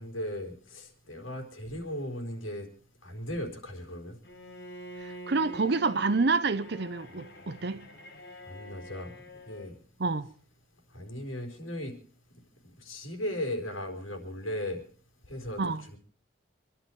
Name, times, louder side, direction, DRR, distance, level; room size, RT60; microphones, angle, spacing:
voice 1, 0.0-2.7 3.0-4.2 8.5-9.1 9.5-9.8 10.9-12.0 12.8-14.8 15.3-16.0, left 1 dB, 85° left, 4.0 m, -37 dB
Bowed string instrument, 4.2-9.8, equal, 55° left, 2.5 m, -46 dB
voice 2, 5.0-7.8 10.0-10.3 15.6-15.8, right 4 dB, 55° right, 0.7 m, -28 dB
26.0 x 11.5 x 4.5 m
head